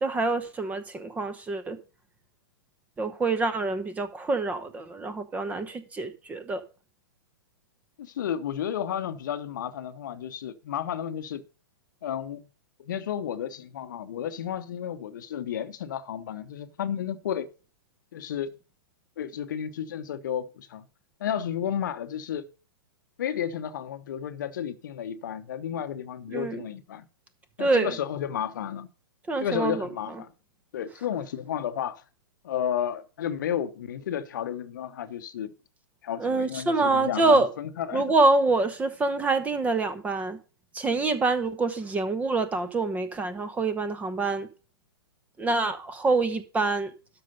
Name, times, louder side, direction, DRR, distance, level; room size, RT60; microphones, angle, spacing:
voice 1, 0.0-1.8 3.0-6.6 26.3-26.6 27.6-27.9 29.3-29.9 36.2-37.5 37.9-40.4 40.7-44.5 45.4-46.9, right 3 dB, 10° right, 0.9 m, -26 dB
voice 2, 8.0-11.4 12.0-12.5 12.8-17.5 18.1-18.5 19.2-20.8 21.2-22.5 23.2-27.1 27.6-28.9 29.4-30.3 30.7-32.0 32.4-35.5 36.0-38.0, left 9 dB, 55° left, 0.9 m, -32 dB
12.5 x 5.0 x 5.3 m
figure-of-eight pair, 115°, 12 cm